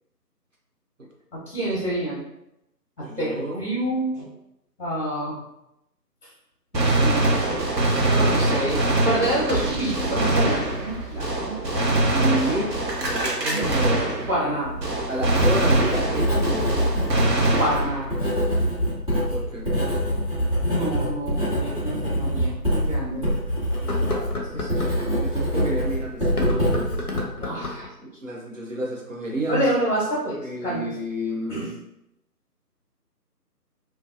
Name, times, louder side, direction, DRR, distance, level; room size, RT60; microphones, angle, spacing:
voice 1, 1.3-2.2 3.0-4.3 4.8-5.4 6.2-6.3 6.7-11.6 13.5-13.8 14.3-14.8 17.6-18.2 20.7-23.3 24.1-24.7 27.4-27.9 29.5-30.9 31.5-31.7, right 1 dB, 45° left, -7 dB, 0.9 m, -28 dB
voice 2, 3.0-3.7 12.1-14.0 14.5-14.6 15.1-16.7 19.3-19.7 25.1-26.9 28.0-29.7 30.4-31.7, right 1 dB, 50° right, -2 dB, 0.7 m, -30 dB
Gunshot gunfire, 6.7-14.5 14.8-18.2, right 2 dB, 90° right, 0.9 m, -23 dB
Writing, 14.4-27.2, equal, 20° right, 1.0 m, -25 dB
sound 1, 21.8-21.9 22.5-22.6 23.7-25.0 26.2-27.9, left 2 dB, 65° left, 0.7 m, -31 dB
2.7 x 2.1 x 2.5 m, 0.85 s
figure-of-eight pair, 160°, 49 cm